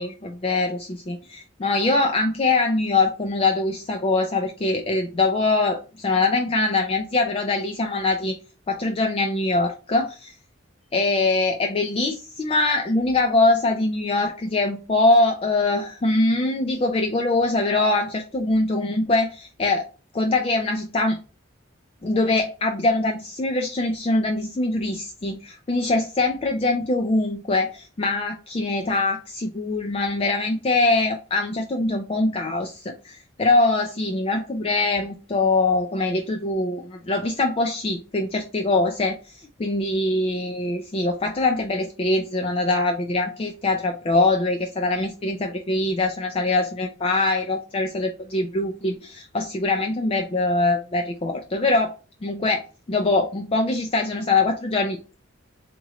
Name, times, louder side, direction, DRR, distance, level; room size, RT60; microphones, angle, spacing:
voice 1, 0.0-8.4 8.7-10.3 10.9-19.9 20.1-21.2 22.0-51.9 52.2-52.6 52.9-55.2, left 2 dB, 30° left, 0.3 m, -23 dB
3.6 x 3.0 x 2.9 m
head